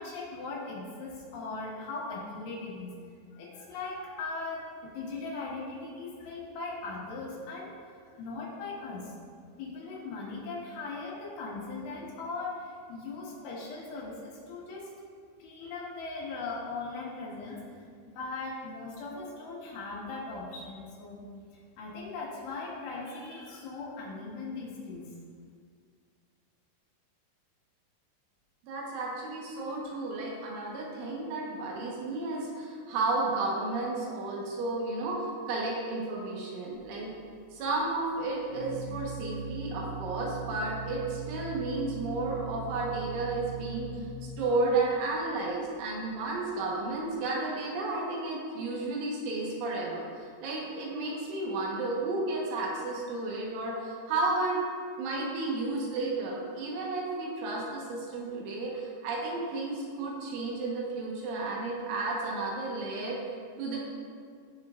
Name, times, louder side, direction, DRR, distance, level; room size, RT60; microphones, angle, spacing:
voice 1, 0.0-3.0 3.3-7.7 8.0-9.2 9.6-14.9 15.4-17.6 18.2-21.3 21.5-25.1, left 3 dB, 70° left, -5 dB, 3.8 m, -39 dB
voice 2, 28.6-37.1 37.5-44.1 44.4-54.6 55.0-63.2 63.6-63.8, right 2 dB, 75° right, -3 dB, 3.5 m, -32 dB
Organ, 36.7-47.2, right 4 dB, 90° right, 2.2 m, -41 dB
17.0 x 6.5 x 2.5 m, 2.1 s
omnidirectional pair, 5.9 m